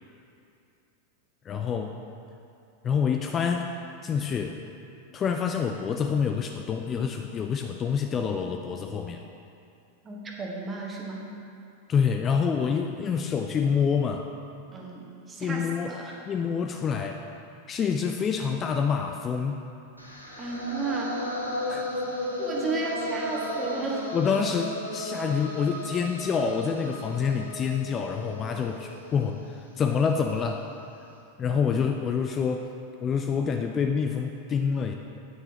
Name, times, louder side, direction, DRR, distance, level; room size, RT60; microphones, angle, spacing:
voice 1, 1.5-1.9 2.8-3.7 4.0-4.6 5.1-9.2 11.9-14.2 15.4-15.9 16.3-17.2 17.7-19.6 21.7-21.9 24.1-30.6 31.4-32.7 33.0-34.9, left 6 dB, 25° left, 4 dB, 0.4 m, -27 dB
voice 2, 10.0-11.2 14.7-16.2 20.4-21.2 22.4-24.1, right 3 dB, 20° right, -1 dB, 1.3 m, -33 dB
sound 1, 20.0-30.0, left 1 dB, 85° left, 1.1 m, -35 dB
9.4 x 8.8 x 3.0 m, 2.7 s
figure-of-eight pair, 90°, 0 cm